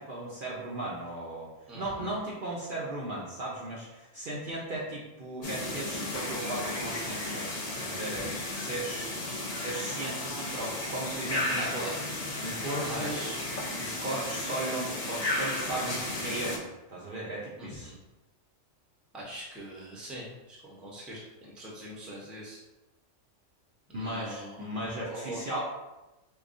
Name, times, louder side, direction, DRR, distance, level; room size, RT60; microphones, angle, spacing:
voice 1, 0.0-1.5 1.7-7.5 7.8-9.1 9.5-11.9 12.4-13.2 13.8-16.6 16.9-17.9 23.9-25.6, right 1 dB, 55° right, -5 dB, 0.7 m, -36 dB
voice 2, 1.7-2.1 8.0-8.4 11.6-11.9 12.9-13.4 17.6-18.0 19.1-22.6 23.9-24.8 25.1-25.4, equal, ahead, -5 dB, 0.5 m, -42 dB
sound 1, 5.4-16.6, left 1 dB, 40° left, 0.6 m, -34 dB
4.5 x 2.3 x 2.5 m, 1.0 s
omnidirectional pair, 1.3 m